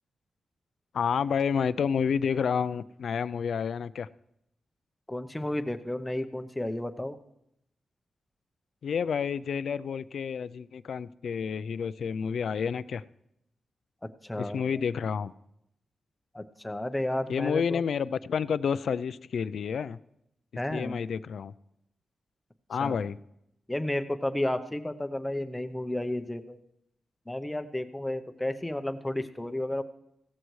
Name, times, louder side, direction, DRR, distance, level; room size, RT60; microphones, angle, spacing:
voice 1, 0.9-4.1 8.8-13.0 14.4-15.3 17.3-20.0 20.7-21.5 22.7-23.2, left 6 dB, 70° left, 17 dB, 0.4 m, -29 dB
voice 2, 5.1-7.2 14.2-14.8 16.3-17.8 20.6-21.0 22.8-23.0 23.7-26.6 27.3-29.8, left 1 dB, 10° left, 9 dB, 0.7 m, -32 dB
16.5 x 14.5 x 3.1 m, 0.80 s
wide cardioid pair, 145°, 0 cm